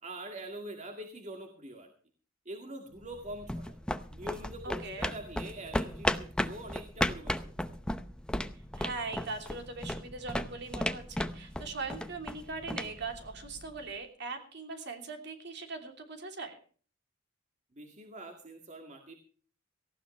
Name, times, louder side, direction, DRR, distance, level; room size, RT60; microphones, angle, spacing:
voice 1, 0.0-1.9 2.5-3.8 4.1-7.8 17.8-19.1, right 1 dB, 35° right, 3 dB, 2.1 m, -44 dB
sound 1, 3.0-13.8, left 1 dB, 5° left, 0.7 m, -36 dB
voice 2, 4.6-5.1 8.8-16.6, right 3 dB, 55° right, 5 dB, 3.1 m, -40 dB
18.5 x 16.0 x 3.3 m, 0.42 s
head